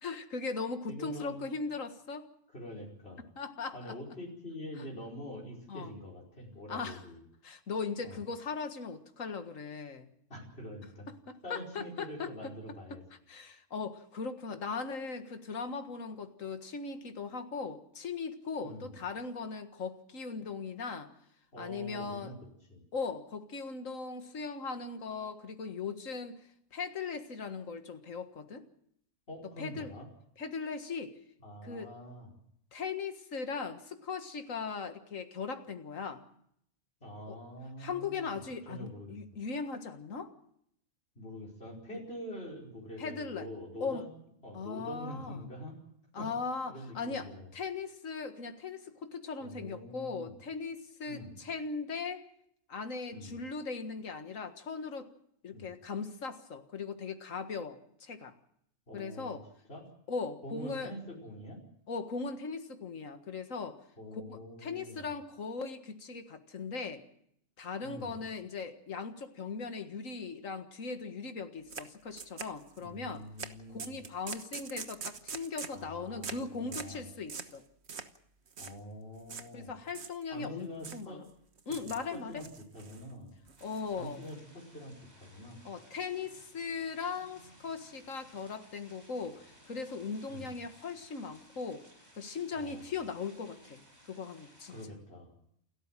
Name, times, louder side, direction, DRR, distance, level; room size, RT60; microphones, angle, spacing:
voice 1, 0.0-2.3 3.4-4.0 5.7-5.9 6.7-7.0 7.4-10.1 11.3-12.3 13.3-21.1 21.6-22.3 22.9-28.7 29.6-29.9 30.4-31.2 31.6-31.9 32.7-36.2 37.3-37.4 37.8-40.3 43.0-43.5 43.8-44.0 44.5-45.4 46.1-52.2 52.7-55.1 55.4-58.3 58.9-59.4 60.1-60.9 61.9-63.8 64.3-67.0 67.6-73.3 73.7-77.6 79.5-81.2 81.7-82.4 83.6-84.2 85.6-91.9 92.2-94.8, left 5 dB, 75° left, 8 dB, 2.0 m, -39 dB
voice 2, 0.9-1.4 2.5-3.3 3.7-7.2 8.0-8.2 10.3-11.1 11.4-13.0 18.6-19.0 21.5-22.4 22.7-22.8 29.3-30.1 31.4-32.3 37.0-38.4 38.7-39.2 41.2-44.1 44.4-45.8 46.2-46.3 46.7-47.5 49.4-50.4 51.1-51.4 53.1-53.4 55.5-55.7 58.9-59.4 59.7-59.9 60.4-61.6 64.0-65.1 67.8-68.2 72.8-74.0 75.7-77.1 78.6-79.7 80.3-81.2 81.9-82.5 82.7-83.3 84.0-85.6 87.2-87.5 90.3-90.6 92.5-92.9 94.7-95.3, equal, 50° left, -2 dB, 5.2 m, -45 dB
sound 1, 71.7-71.9 72.2-72.9 73.4-73.5 73.8-75.8 76.2-76.4 76.7-77.0 77.3-77.6 77.9-78.2 78.5-78.7 79.3-79.5 79.9-80.5 80.8-81.1 81.6-82.1 82.4-83.0 83.5-84.3, right 5 dB, 55° right, 1.5 m, -43 dB
sound 2, 83.6-94.9, right 1 dB, 30° right, 6.0 m, -59 dB
28.5 x 13.5 x 7.4 m, 0.71 s
omnidirectional pair, 1.4 m